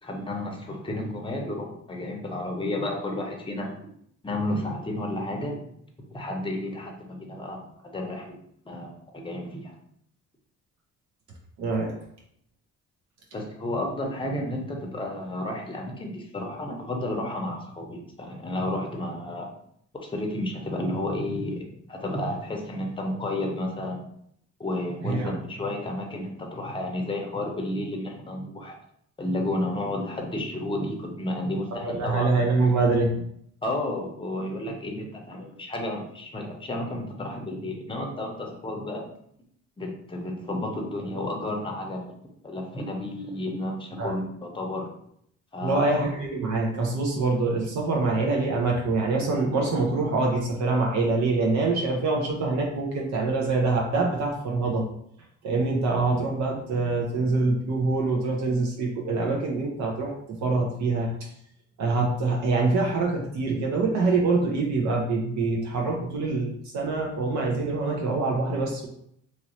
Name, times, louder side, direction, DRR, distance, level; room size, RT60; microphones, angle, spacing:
voice 1, 0.0-3.8 4.2-5.6 6.1-8.4 8.7-9.7 13.3-19.5 19.9-24.0 24.6-28.8 29.2-32.3 33.6-39.0 39.8-42.1 42.4-44.9 45.5-45.9, left 1 dB, 15° left, 1 dB, 0.7 m, -32 dB
voice 2, 11.6-11.9 25.0-25.3 31.8-33.2 44.0-44.1 45.6-54.9 55.4-61.1 61.8-68.9, right 3 dB, 65° right, -1 dB, 0.7 m, -25 dB
3.0 x 2.5 x 3.0 m, 0.70 s
cardioid pair, 90°, 30 cm